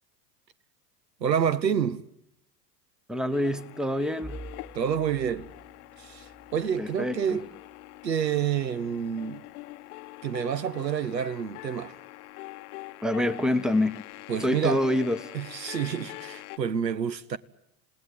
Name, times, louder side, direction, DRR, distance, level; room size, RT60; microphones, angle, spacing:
voice 1, 1.2-2.1 4.7-5.5 6.0-7.5 8.0-9.5 10.2-12.0 14.3-14.8 15.3-17.4, right 8 dB, 90° right, 0.9 m, -28 dB
voice 2, 3.1-4.4 6.8-7.4 13.0-14.0 14.4-15.4, left 1 dB, ahead, 0.9 m, -26 dB
sound 1, 3.3-16.6, left 18 dB, 65° left, 0.9 m, -44 dB
Bowed string instrument, 4.2-9.3, right 3 dB, 15° right, 2.5 m, -49 dB
28.0 x 17.5 x 9.3 m
hypercardioid pair, 85°, 49 cm